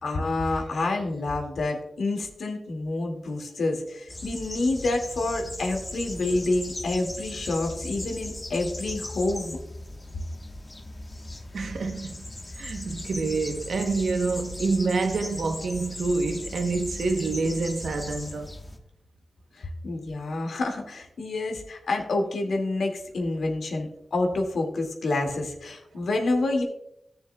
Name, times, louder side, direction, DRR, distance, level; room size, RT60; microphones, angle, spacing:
voice 1, 0.0-9.6 19.6-26.6, left 2 dB, 85° left, 2.0 m, -28 dB
sound 1, 4.1-18.8, left 1 dB, 25° left, 1.1 m, -38 dB
voice 2, 11.5-12.3 12.6-18.5, right 3 dB, 75° right, 0.8 m, -27 dB
17.0 x 7.0 x 2.2 m
wide cardioid pair, 140°, 0 cm